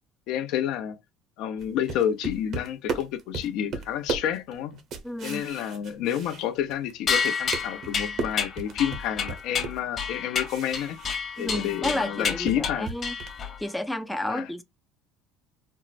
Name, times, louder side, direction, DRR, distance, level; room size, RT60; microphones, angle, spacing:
voice 1, 0.3-1.0 1.4-4.8 5.2-11.0 11.4-12.9 14.3-14.5, left 10 dB, 70° left, 0.6 m, -29 dB
sound 1, 1.6-6.9 7.2-11.8 12.1-13.5, right 4 dB, 50° right, 0.8 m, -36 dB
voice 2, 5.0-5.4 11.4-13.1 13.6-14.6, left 1 dB, 5° left, 0.4 m, -31 dB
sound 2, 7.1-13.6, left 6 dB, 40° left, 1.0 m, -30 dB
4.4 x 2.0 x 2.4 m
cardioid pair, 120°, 0 cm